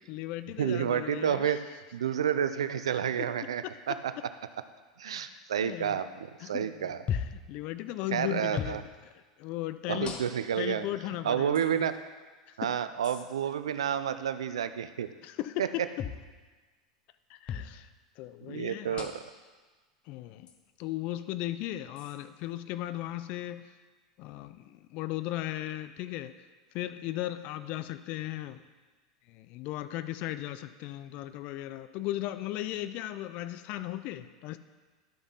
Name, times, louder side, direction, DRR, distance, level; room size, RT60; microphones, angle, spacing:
voice 1, 0.0-1.6 3.6-3.7 5.1-6.0 6.4-8.9 9.4-10.1 10.6-11.9 12.5-12.7 15.2-15.8 17.3-17.9 18.2-19.1 20.1-20.5 20.8-23.7 24.2-26.3 26.7-28.6 29.3-34.6, left 14 dB, 55° left, 12 dB, 0.5 m, -37 dB
voice 2, 0.6-1.6 1.9-4.1 5.0-7.0 8.1-8.8 9.9-10.9 11.2-12.0 12.6-15.1 15.6-15.9 18.5-19.2, right 9 dB, 80° right, 12 dB, 0.5 m, -30 dB
sound 1, 7.1-7.4 8.5-8.8 10.0-10.6 11.5-11.7 13.0-13.2 16.0-16.2 17.5-17.7 19.0-19.3 20.5-20.6 22.0-22.2, left 7 dB, 35° left, 1.0 m, -36 dB
11.5 x 5.8 x 4.1 m, 1.3 s
hypercardioid pair, 90°, 3 cm